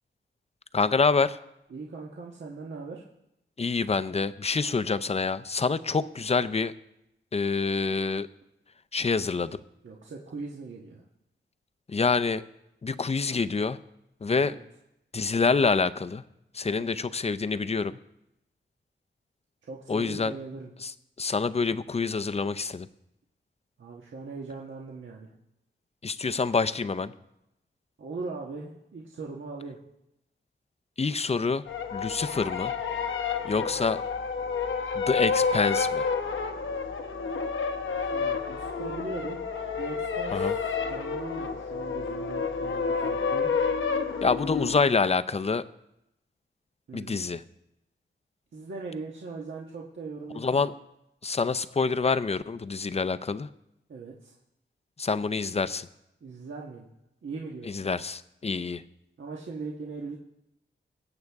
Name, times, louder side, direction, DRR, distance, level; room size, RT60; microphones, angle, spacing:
voice 1, 0.7-1.4 3.6-6.7 7.3-8.3 8.9-9.6 11.9-12.4 12.8-13.8 14.2-14.6 15.1-16.2 16.5-18.0 19.9-20.3 20.8-20.9 21.2-22.9 26.0-27.1 31.0-31.6 31.9-32.7 33.4-34.0 34.9-36.1 40.3-40.5 44.2-45.6 46.9-47.4 50.3-50.7 51.2-53.5 55.0-55.9 57.6-58.8, left 4 dB, 30° left, 14 dB, 0.6 m, -26 dB
voice 2, 1.7-3.0 9.8-11.0 14.3-14.6 16.8-16.9 19.6-20.7 23.8-25.3 28.0-29.8 33.5-33.9 38.0-39.4 39.8-43.5 46.9-47.2 48.5-50.7 53.9-54.3 56.2-56.8 57.2-57.7 59.2-60.2, right 4 dB, 75° right, -2 dB, 1.5 m, -40 dB
sound 1, 31.7-44.8, left 5 dB, 85° left, 1.0 m, -29 dB
22.0 x 8.1 x 3.6 m, 0.86 s
wide cardioid pair, 85°, 20 cm